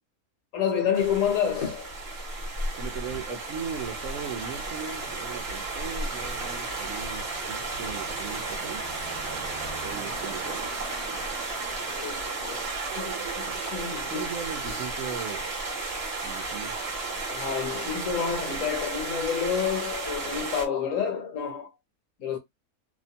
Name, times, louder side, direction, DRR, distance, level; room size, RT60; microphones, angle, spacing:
voice 1, 0.5-1.9 11.9-14.3 17.3-21.7 22.2-22.4, left 7 dB, 65° left, 1.0 m, -29 dB
sound 1, 0.9-20.7, right 3 dB, 45° right, 1.0 m, -33 dB
voice 2, 2.8-8.8 9.8-10.7 14.1-15.5 16.2-16.8, right 7 dB, 65° right, 1.0 m, -38 dB
sound 2, 3.6-13.8, right 2 dB, 25° right, 0.7 m, -45 dB
sound 3, 12.5-14.3, right 9 dB, 85° right, 1.2 m, -42 dB
2.8 x 2.2 x 2.6 m
omnidirectional pair, 1.7 m